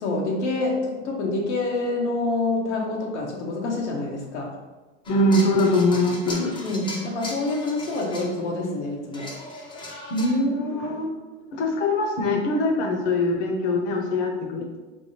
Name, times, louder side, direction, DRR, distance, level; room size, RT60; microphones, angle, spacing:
voice 1, 0.0-4.6 6.6-9.3, left 2 dB, 90° left, -1 dB, 1.0 m, -27 dB
sound 1, 5.0-8.5 9.1-10.4, left 2 dB, 15° left, 0.7 m, -38 dB
voice 2, 5.1-6.6 10.1-11.1 11.5-14.8, left 1 dB, 60° left, 2 dB, 1.0 m, -23 dB
3.4 x 2.6 x 4.3 m, 1.2 s
supercardioid pair, 115°, 34 cm